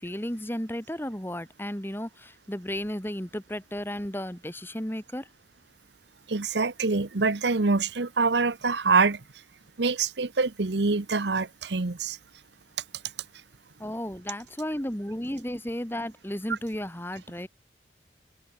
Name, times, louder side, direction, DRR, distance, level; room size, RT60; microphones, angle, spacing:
voice 1, 0.0-5.3 13.8-17.5, equal, 10° left, 1.9 m, -34 dB
voice 2, 6.3-9.2 9.8-12.2 16.5-16.6, right 4 dB, 70° right, 1.0 m, -25 dB
head